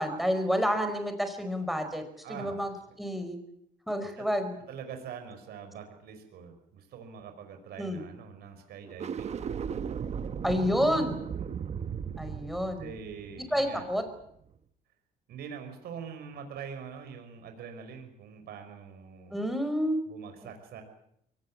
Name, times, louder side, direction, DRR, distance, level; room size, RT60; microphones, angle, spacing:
voice 1, 0.0-2.0 2.3-3.4 3.9-4.6 7.8-8.0 10.4-11.2 12.2-12.9 13.4-14.0 19.3-20.0, equal, ahead, 8 dB, 4.8 m, -29 dB
voice 2, 2.2-2.7 4.2-4.3 4.7-9.4 11.4-11.6 12.8-13.8 15.3-19.4 20.1-20.8, right 7 dB, 70° right, 6 dB, 5.5 m, -44 dB
sound 1, 8.9-14.2, right 7 dB, 40° right, 1.3 m, -36 dB
23.5 x 18.0 x 8.7 m, 0.72 s
cardioid pair, 110°, 17 cm